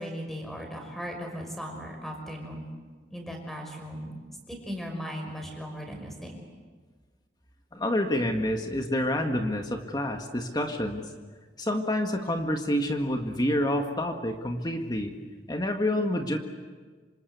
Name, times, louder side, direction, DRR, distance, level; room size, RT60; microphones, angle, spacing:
voice 1, 0.0-2.7 3.1-4.2 4.5-6.4, equal, ahead, 2 dB, 5.7 m, -37 dB
voice 2, 7.7-11.1 11.6-15.1 15.5-16.4, left 1 dB, 25° left, 4 dB, 1.9 m, -28 dB
27.0 x 26.5 x 8.3 m, 1.5 s
head